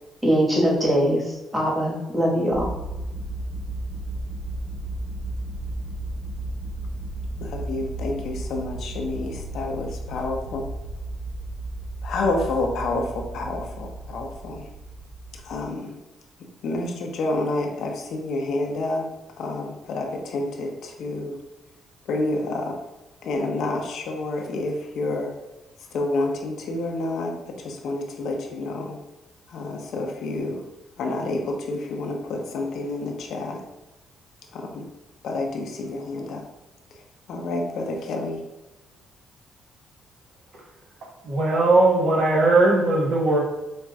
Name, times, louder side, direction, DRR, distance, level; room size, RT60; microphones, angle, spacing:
voice 1, 0.2-2.7, equal, 10° right, -4 dB, 1.3 m, -22 dB
sound 1, 2.5-15.7, right 1 dB, 40° right, 0.6 m, -34 dB
voice 2, 7.4-10.7 12.0-14.7 15.3-16.0 16.4-19.1 19.4-21.4 22.1-22.8 23.2-25.3 25.8-29.0 29.5-30.7 31.0-33.6 34.5-34.9 35.2-36.4 36.9-38.4, left 2 dB, 70° left, 2 dB, 0.6 m, -29 dB
voice 3, 41.2-43.4, right 2 dB, 70° right, -3 dB, 1.2 m, -19 dB
5.2 x 2.3 x 2.3 m, 1.0 s
cardioid pair, 90°, 0 cm